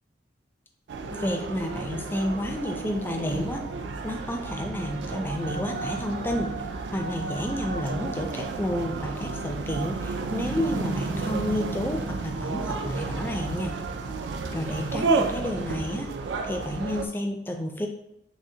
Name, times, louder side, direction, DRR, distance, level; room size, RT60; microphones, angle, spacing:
sound 1, 0.9-17.1, right 4 dB, 80° right, 0.4 m, -32 dB
voice 1, 1.1-3.6 4.0-6.5 6.9-13.8 14.5-16.1 16.4-17.9, left 1 dB, 10° left, 3 dB, 0.4 m, -30 dB
6.0 x 2.1 x 2.7 m, 0.84 s
head